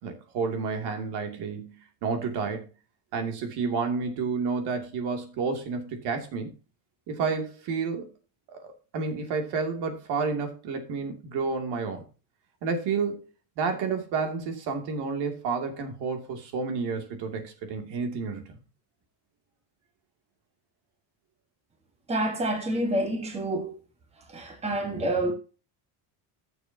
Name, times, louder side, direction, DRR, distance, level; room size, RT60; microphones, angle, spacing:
voice 1, 0.0-1.7 2.0-2.7 3.1-6.5 7.1-8.1 8.5-12.0 12.6-13.2 13.6-18.6, right 5 dB, 60° right, 2.7 m, -30 dB
voice 2, 22.1-23.8 24.3-25.3, right 1 dB, 15° right, 1.5 m, -28 dB
14.0 x 7.1 x 2.9 m
cardioid pair, 175°, 46 cm